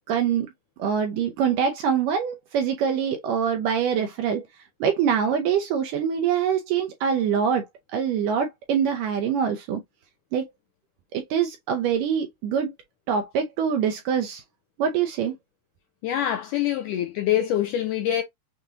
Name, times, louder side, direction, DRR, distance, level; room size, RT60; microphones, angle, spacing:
voice 1, 0.1-0.5 0.8-4.4 4.8-7.7 7.9-9.8 10.3-10.5 11.1-12.7 13.1-14.4 14.8-15.3, right 7 dB, 80° right, 1.9 m, -24 dB
voice 2, 16.0-18.2, left 11 dB, 85° left, 1.9 m, -25 dB
6.7 x 2.6 x 2.8 m
omnidirectional pair, 4.4 m